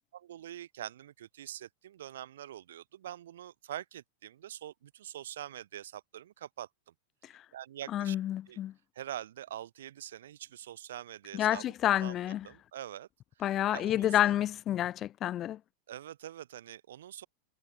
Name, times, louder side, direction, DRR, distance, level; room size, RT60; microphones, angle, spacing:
voice 1, 0.1-6.7 7.5-8.2 8.5-8.6 8.9-13.1 13.7-14.4 15.9-17.3, right 11 dB, 60° right, 4.2 m, -44 dB
voice 2, 7.9-8.7 11.3-12.5 13.4-15.6, left 12 dB, 30° left, 3.4 m, -29 dB
figure-of-eight pair, 90°, 0 cm